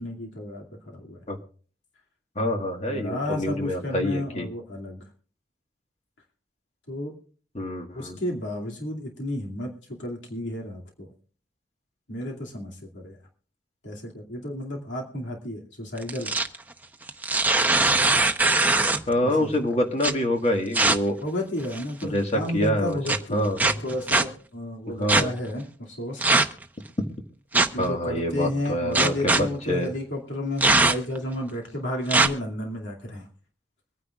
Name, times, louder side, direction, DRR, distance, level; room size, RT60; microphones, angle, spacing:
voice 1, 0.0-1.2 2.9-5.0 6.9-7.1 7.9-11.1 12.1-13.2 13.8-16.3 19.2-19.6 21.2-26.3 27.5-33.3, left 1 dB, 85° left, -1 dB, 2.5 m, -32 dB
voice 2, 2.3-4.5 7.5-8.2 19.1-21.2 22.0-23.0 23.3-23.6 25.0-25.3 27.8-29.9, equal, 35° left, 4 dB, 1.7 m, -26 dB
sound 1, 16.0-16.6 17.1-19.1 20.0-20.1 20.7-21.0 21.6-22.0 23.1-23.2 23.6-24.2 25.1-25.2 26.2-26.6 27.5-27.9 29.0-29.4 30.6-31.2 32.1-32.3, right 3 dB, 10° right, 0.7 m, -20 dB
24.5 x 9.7 x 2.4 m, 0.43 s
head